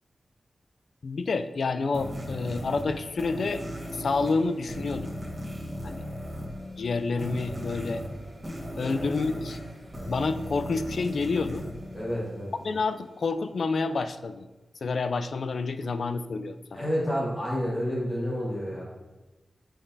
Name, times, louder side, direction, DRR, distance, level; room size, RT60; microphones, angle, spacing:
voice 1, 1.0-3.6 3.9-5.1 5.8-6.0 6.8-8.0 8.8-9.6 10.1-11.7 12.6-14.5 14.8-16.8, left 4 dB, 65° left, 11 dB, 0.3 m, -28 dB
sound 1, 1.9-12.7, equal, 10° right, 1.4 m, -37 dB
voice 2, 11.9-12.5 16.7-18.8, equal, 25° left, -7 dB, 1.5 m, -29 dB
7.3 x 5.1 x 2.7 m, 1.1 s
wide cardioid pair, 135°, 0 cm